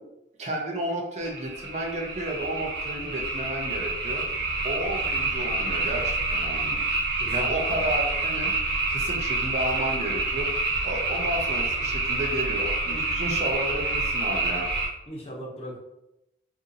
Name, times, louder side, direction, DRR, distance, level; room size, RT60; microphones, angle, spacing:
voice 1, 0.4-4.2 4.6-6.8 7.3-8.5 8.9-10.5 10.8-14.7, right 1 dB, 40° right, 1 dB, 0.6 m, -32 dB
sound 1, 1.2-14.9, right 2 dB, 70° right, 0.8 m, -28 dB
voice 2, 7.2-7.9 15.1-15.8, equal, 35° left, -2 dB, 0.7 m, -39 dB
2.6 x 2.6 x 3.9 m, 0.90 s
head